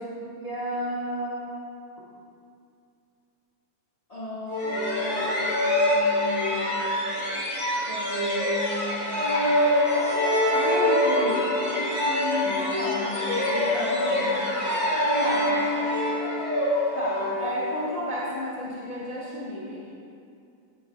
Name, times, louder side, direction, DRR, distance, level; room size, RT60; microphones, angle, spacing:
voice 1, 0.3-1.7 4.1-7.0 7.9-9.1 10.5-14.6 15.2-15.7 16.9-19.9, left 1 dB, 75° left, -6 dB, 0.3 m, -33 dB
sound 1, 4.5-18.0, left 1 dB, 30° left, 1.4 m, -25 dB
8.3 x 3.4 x 4.0 m, 2.6 s
omnidirectional pair, 1.8 m